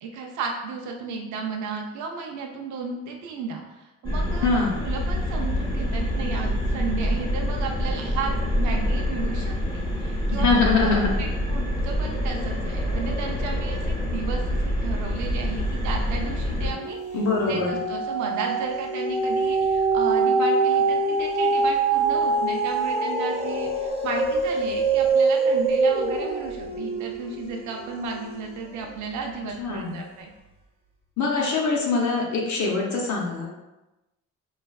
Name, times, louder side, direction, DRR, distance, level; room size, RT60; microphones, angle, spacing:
voice 1, 0.0-4.5 4.8-17.0 17.5-30.3, right 4 dB, 75° right, 1 dB, 0.5 m, -34 dB
sound 1, 4.0-16.7, equal, 15° left, 0.7 m, -26 dB
voice 2, 4.4-4.8 10.3-11.2 17.1-17.8 29.6-30.0 31.2-33.5, left 4 dB, 65° left, -2 dB, 0.7 m, -23 dB
sound 2, 15.7-16.2 16.6-29.0 29.6-29.7, right 3 dB, 20° right, 0.7 m, -24 dB
3.2 x 2.3 x 2.3 m, 1.0 s
cardioid pair, 90°, 30 cm